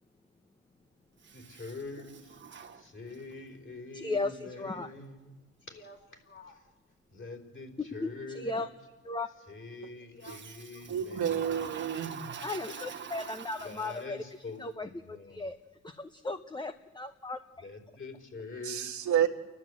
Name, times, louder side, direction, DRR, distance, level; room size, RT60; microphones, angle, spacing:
Toilet flush, 1.2-3.4 10.2-14.3, right 7 dB, 40° right, 1.3 m, -45 dB
voice 1, 1.3-2.4 2.7-6.7 7.1-8.6 9.5-11.6 12.7-12.8 13.6-15.5 17.6-19.0, left 3 dB, 40° left, 3 dB, 4.3 m, -45 dB
voice 2, 3.9-4.9 7.8-8.7 9.0-9.3 12.4-15.6 15.8-17.7, left 3 dB, 15° left, 8 dB, 0.8 m, -36 dB
voice 3, 10.9-12.4 18.6-19.3, right 9 dB, 70° right, 5 dB, 1.6 m, -30 dB
29.5 x 12.0 x 7.8 m, 1.2 s
cardioid pair, 90°, 30 cm